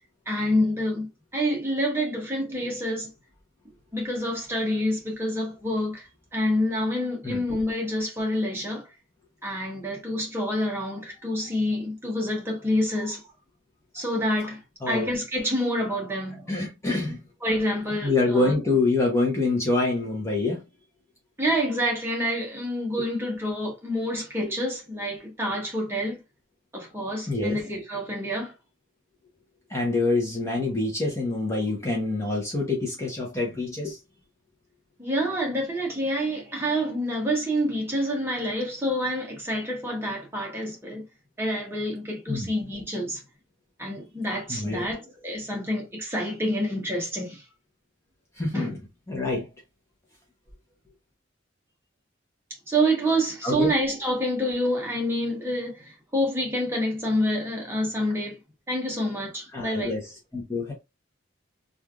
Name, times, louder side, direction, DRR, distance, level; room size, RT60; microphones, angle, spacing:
voice 1, 0.3-3.1 3.9-8.9 9.4-13.2 13.9-16.5 17.4-18.5 21.4-26.2 26.7-28.5 35.0-41.1 41.4-43.2 43.8-47.4 48.5-48.7 52.7-58.4 58.7-59.9, equal, 10° right, 0.9 m, -27 dB
voice 2, 16.5-17.2 18.0-20.6 27.3-27.6 29.7-34.0 42.3-42.5 44.5-44.8 48.4-48.8 49.1-49.5 53.4-53.7 59.5-60.7, left 2 dB, 15° left, 0.7 m, -26 dB
3.1 x 2.5 x 2.3 m
head